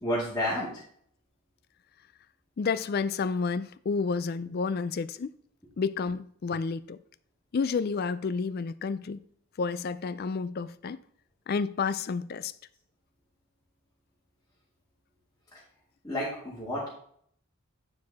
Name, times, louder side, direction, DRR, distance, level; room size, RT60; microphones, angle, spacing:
voice 1, 0.0-0.7 15.5-15.6 16.0-16.9, equal, 15° left, 2.3 m, -30 dB
voice 2, 2.6-5.3 5.8-7.0 7.5-9.2 9.6-11.0 11.5-12.5, left 5 dB, 45° left, 0.3 m, -30 dB
9.7 x 4.8 x 4.1 m
head